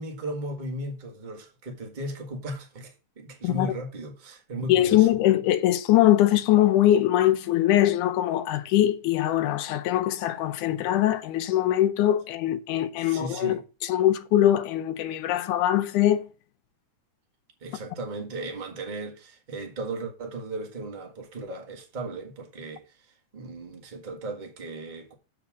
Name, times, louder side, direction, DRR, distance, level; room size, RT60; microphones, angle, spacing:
voice 1, 0.0-5.1 13.0-13.7 17.6-25.1, right 2 dB, 25° right, 1.2 m, -36 dB
voice 2, 4.7-16.3, left 13 dB, 85° left, 2.3 m, -22 dB
7.3 x 5.0 x 7.1 m
omnidirectional pair, 3.5 m